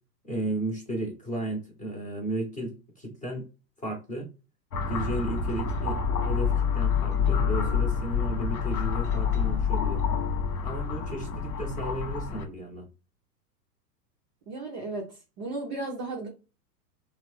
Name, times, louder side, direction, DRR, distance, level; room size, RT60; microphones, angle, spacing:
voice 1, 0.2-3.5 3.8-4.3 4.9-6.0 6.2-10.0 10.6-12.8, right 1 dB, 15° left, -1 dB, 0.7 m, -34 dB
sound 1, 4.7-12.5, left 6 dB, 65° left, 0.7 m, -27 dB
voice 2, 14.5-16.3, right 2 dB, 20° right, -2 dB, 0.4 m, -35 dB
3.1 x 2.0 x 3.0 m, 0.31 s
figure-of-eight pair, 100°, 49 cm